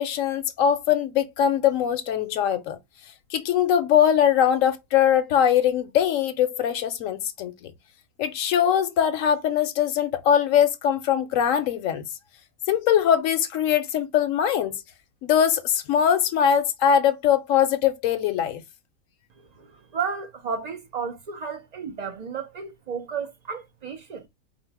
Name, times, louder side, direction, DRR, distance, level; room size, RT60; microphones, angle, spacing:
voice 1, 0.0-2.8 3.3-7.7 8.2-12.0 12.7-14.7 15.2-18.6, left 9 dB, 75° left, 0.9 m, -22 dB
voice 2, 19.4-24.3, right 6 dB, 90° right, 0.3 m, -33 dB
4.4 x 2.0 x 4.5 m
omnidirectional pair, 1.5 m